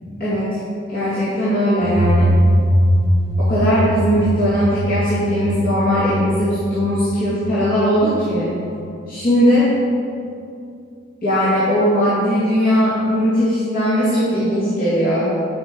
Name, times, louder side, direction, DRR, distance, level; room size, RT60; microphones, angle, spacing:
voice 1, 0.0-0.6 0.9-2.3 3.4-8.5 9.1-9.7 11.2-15.3, equal, 45° left, -11 dB, 2.3 m, -18 dB
sound 1, 1.8-8.4, equal, 25° right, 1.1 m, -20 dB
10.5 x 5.4 x 5.2 m, 2.5 s
head